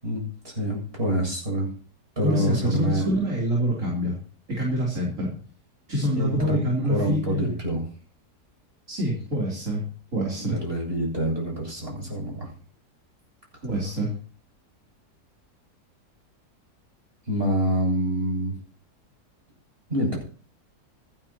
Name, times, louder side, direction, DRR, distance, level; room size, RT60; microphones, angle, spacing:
voice 1, 0.0-1.7 2.2-3.1 6.2-7.8 10.4-12.5 17.3-18.5 19.9-20.2, right 1 dB, 35° right, -1 dB, 8.1 m, -26 dB
voice 2, 2.2-4.2 4.6-5.3 5.9-7.6 8.9-9.8 10.1-10.6 13.6-14.1, equal, 50° right, -3 dB, 4.0 m, -26 dB
25.5 x 10.0 x 3.0 m, 0.42 s
omnidirectional pair, 1.8 m